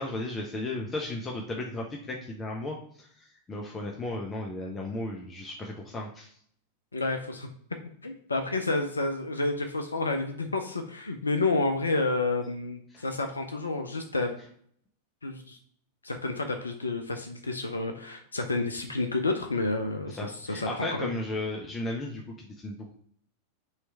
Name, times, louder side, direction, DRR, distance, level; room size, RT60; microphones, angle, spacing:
voice 1, 0.0-6.4 12.9-13.0 20.1-22.9, left 2 dB, 15° left, 0 dB, 0.6 m, -35 dB
voice 2, 6.9-7.5 8.0-14.3 15.2-15.6 16.0-21.1, left 2 dB, 75° left, 5 dB, 0.4 m, -30 dB
3.2 x 3.0 x 4.4 m, 0.63 s
figure-of-eight pair, 90°, 0 cm